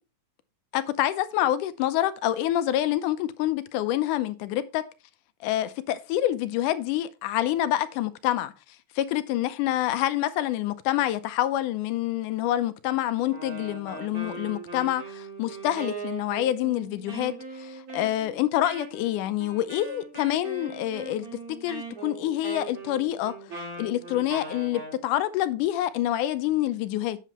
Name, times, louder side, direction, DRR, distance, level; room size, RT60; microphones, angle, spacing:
voice 1, 0.7-4.8 5.4-8.5 9.0-23.4 23.8-27.2, left 13 dB, 90° left, 2.2 m, -27 dB
Wind instrument woodwind instrument, 13.2-25.0, right 4 dB, 30° right, 2.9 m, -40 dB
8.0 x 7.5 x 3.0 m
omnidirectional pair, 3.5 m